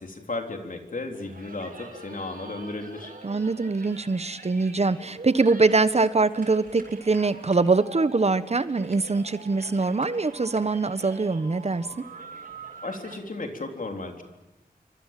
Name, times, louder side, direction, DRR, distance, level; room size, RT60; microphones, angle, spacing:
voice 1, 0.0-3.1 12.8-14.2, left 2 dB, 60° left, 4 dB, 3.7 m, -34 dB
sound 1, 1.1-13.2, right 3 dB, 65° right, 7.3 m, -45 dB
voice 2, 3.2-11.9, right 3 dB, 45° right, 14 dB, 1.0 m, -23 dB
28.0 x 24.5 x 7.5 m, 1.0 s
wide cardioid pair, 90°, 16 cm